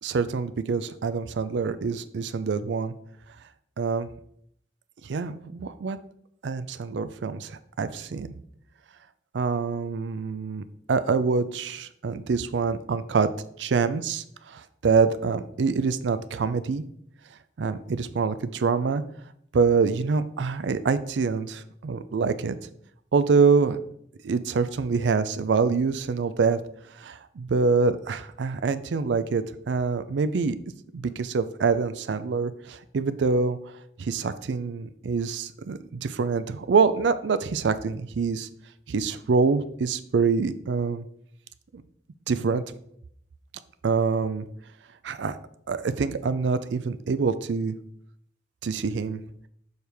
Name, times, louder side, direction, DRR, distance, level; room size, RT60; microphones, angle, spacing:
voice 1, 0.0-2.9 3.8-4.1 5.0-6.0 6.4-8.3 9.3-13.3 13.6-16.9 17.6-19.0 19.5-22.6 23.1-23.8 24.2-26.6 26.9-30.6 30.9-33.6 34.0-38.5 38.9-41.1 42.3-42.6 43.8-44.5 45.0-45.4 45.7-47.7 48.6-49.2, right 5 dB, 75° right, 13 dB, 0.4 m, -25 dB
6.5 x 4.4 x 3.4 m, 0.69 s
head